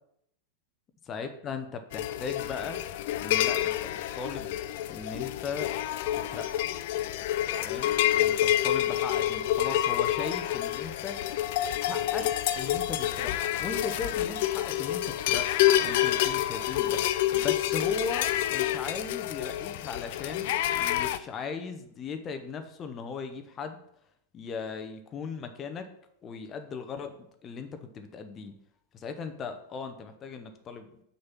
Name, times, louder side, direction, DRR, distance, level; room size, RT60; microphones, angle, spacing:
voice 1, 1.1-2.8 3.2-4.6 4.9-5.7 6.1-6.5 7.6-11.2 11.8-23.8 24.3-25.9 26.2-27.1 27.4-28.5 28.9-31.0, left 5 dB, 25° left, 7 dB, 0.9 m, -38 dB
sound 1, 1.9-21.2, left 12 dB, 50° left, 0.4 m, -28 dB
6.4 x 5.6 x 6.1 m, 0.73 s
figure-of-eight pair, 90°, 0 cm